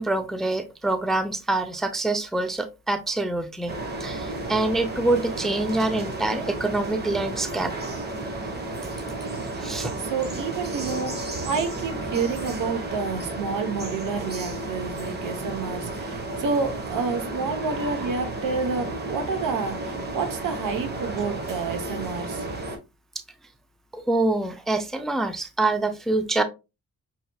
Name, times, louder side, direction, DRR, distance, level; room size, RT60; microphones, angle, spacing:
voice 1, 0.0-7.7 9.6-9.9 23.9-26.4, right 2 dB, ahead, 0.4 m, -26 dB
sound 1, 3.7-22.8, right 2 dB, 30° right, 1.0 m, -32 dB
voice 2, 10.0-22.5, right 4 dB, 80° right, 0.9 m, -29 dB
5.6 x 2.8 x 2.2 m
cardioid pair, 120°, 31 cm